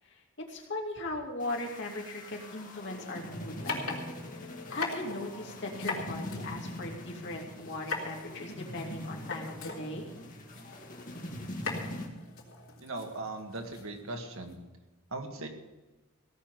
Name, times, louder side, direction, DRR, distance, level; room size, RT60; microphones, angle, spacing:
voice 1, 0.5-4.0 4.3-10.1, left 2 dB, 60° left, 0 dB, 2.7 m, -39 dB
sound 1, 1.4-12.1, left 1 dB, 40° left, 2.1 m, -43 dB
sound 2, 3.6-14.5, left 3 dB, 75° left, 3.7 m, -42 dB
voice 2, 12.8-14.6 15.1-15.5, right 2 dB, 85° right, 3 dB, 2.0 m, -39 dB
17.5 x 6.3 x 9.2 m, 1.1 s
head